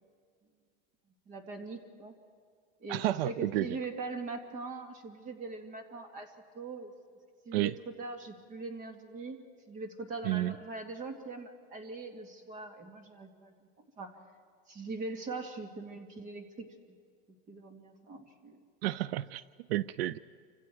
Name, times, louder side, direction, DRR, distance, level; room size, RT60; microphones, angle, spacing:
voice 1, 1.3-2.1 2.8-6.9 7.5-9.4 9.7-13.5 14.0-14.2 14.7-16.7 17.5-18.6 20.1-20.2, right 3 dB, 25° right, 5 dB, 2.1 m, -41 dB
voice 2, 2.9-3.7 7.5-7.7 10.2-10.5 18.8-19.4 19.7-20.2, right 15 dB, 85° right, 18 dB, 0.5 m, -30 dB
28.5 x 26.0 x 4.7 m, 2.1 s
supercardioid pair, 165°, 30 cm